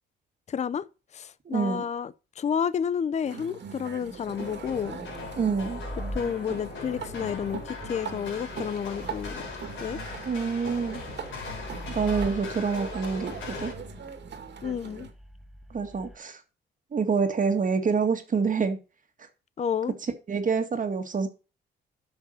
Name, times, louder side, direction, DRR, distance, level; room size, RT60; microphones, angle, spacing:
voice 1, 0.5-0.9 1.1-5.0 6.1-9.4 9.8-10.0 14.6-15.1 19.6-19.9, left 7 dB, 35° left, 0.5 m, -30 dB
voice 2, 1.5-1.9 5.4-5.8 10.3-11.0 11.9-13.7 15.7-16.4 16.9-18.8 20.3-21.3, right 5 dB, 40° right, 2.0 m, -27 dB
sound 1, 3.2-15.1, right 6 dB, 60° right, 2.1 m, -41 dB
sound 2, 4.0-16.2, equal, ahead, 1.2 m, -43 dB
sound 3, 4.2-13.7, left 4 dB, 75° left, 4.5 m, -40 dB
8.4 x 6.2 x 6.4 m
cardioid pair, 90°, 20 cm